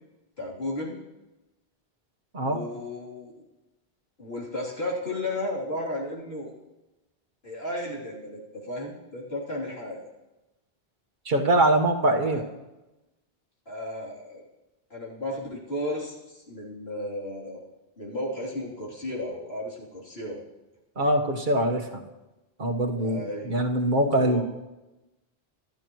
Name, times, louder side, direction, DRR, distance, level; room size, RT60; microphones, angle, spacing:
voice 1, 0.4-0.9 2.4-3.3 4.2-6.5 7.4-10.1 12.1-12.4 13.7-14.4 14.9-17.6 18.0-20.4 23.0-23.5 24.2-24.4, left 1 dB, 80° left, -5 dB, 3.7 m, -34 dB
voice 2, 11.2-12.4 21.0-22.0 22.6-24.4, right 1 dB, 50° right, 2 dB, 1.5 m, -23 dB
26.5 x 12.0 x 3.1 m, 1.0 s
omnidirectional pair, 1.0 m